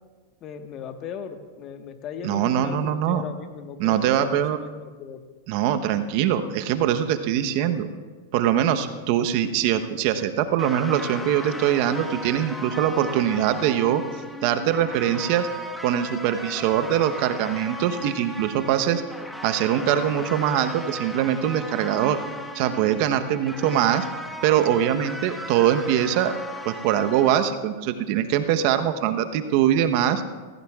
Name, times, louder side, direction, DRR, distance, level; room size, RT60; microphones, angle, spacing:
voice 1, 0.4-5.2, left 7 dB, 40° left, 6 dB, 1.4 m, -37 dB
voice 2, 2.2-3.2 3.8-4.6 5.5-7.9 8.3-14.0 14.4-15.5 15.8-19.0 19.4-22.2 22.5-24.0 24.4-26.4 26.6-30.2, right 10 dB, 55° right, 8 dB, 1.0 m, -22 dB
sound 1, 10.6-27.4, equal, ahead, 1.2 m, -37 dB
25.0 x 16.0 x 2.4 m, 1.4 s
hypercardioid pair, 105°, 0 cm